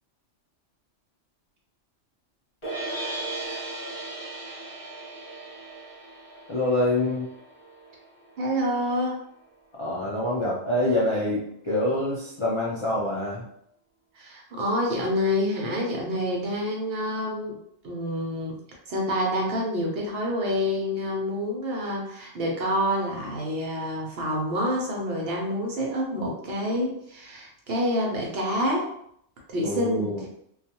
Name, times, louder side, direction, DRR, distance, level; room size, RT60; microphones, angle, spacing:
sound 1, 2.6-8.8, right 2 dB, 25° left, 1.0 m, -37 dB
voice 1, 6.5-7.3 9.8-13.4 29.6-30.2, left 1 dB, 55° left, -5 dB, 0.3 m, -26 dB
voice 2, 8.4-9.2 14.2-17.6 17.8-18.6 18.9-28.9 29.5-30.3, equal, 60° right, -1 dB, 0.9 m, -27 dB
2.3 x 2.3 x 2.8 m, 0.70 s
omnidirectional pair, 1.2 m